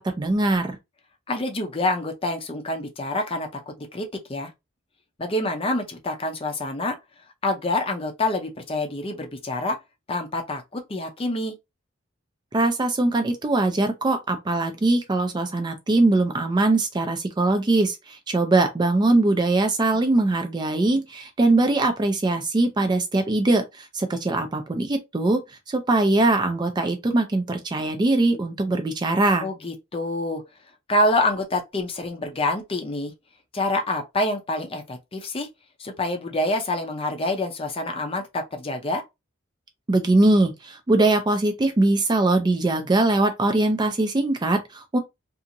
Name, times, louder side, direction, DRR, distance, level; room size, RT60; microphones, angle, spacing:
voice 1, 0.2-0.8 12.5-25.4 25.7-29.5 39.9-45.0, right 2 dB, 20° right, 0.4 m, -21 dB
voice 2, 1.3-4.5 5.2-7.0 7.4-9.8 10.1-11.5 29.4-30.4 30.9-33.1 33.5-35.5 35.8-39.0, left 1 dB, 30° left, 0.5 m, -27 dB
2.8 x 2.5 x 2.5 m
head